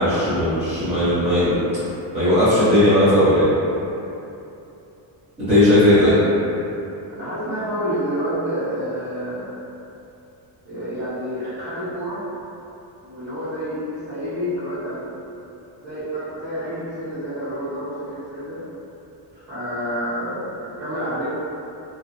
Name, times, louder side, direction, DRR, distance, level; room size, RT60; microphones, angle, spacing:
voice 1, 0.0-1.6 2.1-3.5 5.4-6.1, left 1 dB, 15° right, -17 dB, 0.8 m, -17 dB
voice 2, 5.8-6.3 7.1-9.5 10.6-12.2 13.0-15.1 15.8-18.6 19.3-21.3, equal, 35° right, -14 dB, 1.4 m, -29 dB
2.6 x 2.0 x 2.4 m, 2.9 s
cardioid pair, 135°, 46 cm